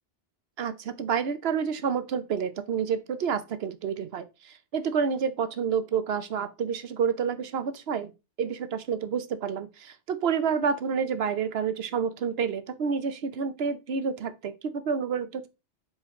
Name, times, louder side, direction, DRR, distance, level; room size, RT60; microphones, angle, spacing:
voice 1, 0.6-8.1 8.4-15.5, right 6 dB, 65° right, 1.0 m, -29 dB
7.5 x 4.5 x 3.6 m
omnidirectional pair, 1.1 m